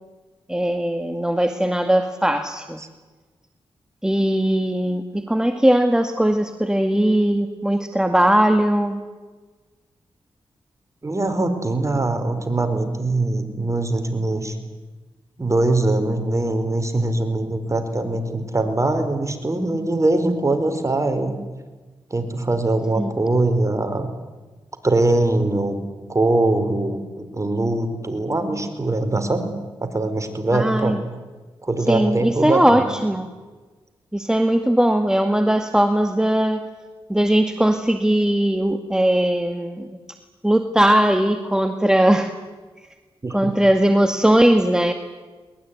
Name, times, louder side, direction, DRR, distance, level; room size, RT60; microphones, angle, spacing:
voice 1, 0.5-2.8 4.0-9.0 23.0-23.1 30.5-31.0 31.9-33.3 34.1-36.7 37.1-39.9 40.4-42.3 43.3-44.9, right 1 dB, 5° right, 7 dB, 2.0 m, -19 dB
voice 2, 11.0-14.6 15.4-21.4 22.1-24.1 24.8-25.8 26.1-29.5 29.8-31.0 31.6-32.8 43.2-43.5, right 2 dB, 30° right, 8 dB, 4.7 m, -22 dB
22.0 x 20.5 x 9.7 m, 1.3 s
cardioid pair, 50°, 10 cm